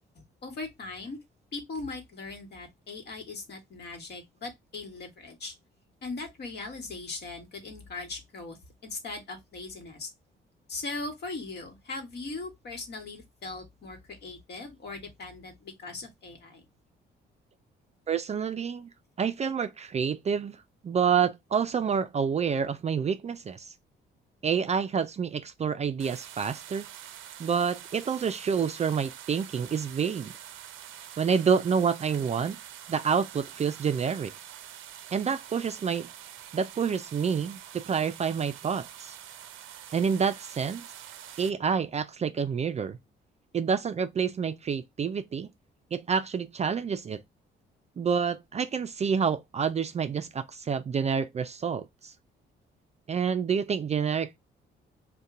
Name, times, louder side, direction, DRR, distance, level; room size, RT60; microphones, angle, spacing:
voice 1, 0.4-1.2 1.5-5.5 6.0-10.1 10.7-16.6, left 3 dB, 55° left, 1.3 m, -39 dB
voice 2, 18.1-18.9 19.2-23.7 24.4-26.9 27.4-30.3 31.2-32.6 32.9-34.3 35.1-36.1 36.5-39.2 39.9-40.8 41.4-43.0 43.5-45.5 45.9-47.2 48.0-52.1 53.1-54.4, right 6 dB, 35° right, 0.4 m, -28 dB
sound 1, 26.0-41.5, right 10 dB, 85° right, 0.5 m, -46 dB
2.7 x 2.2 x 3.5 m
cardioid pair, 90°, 20 cm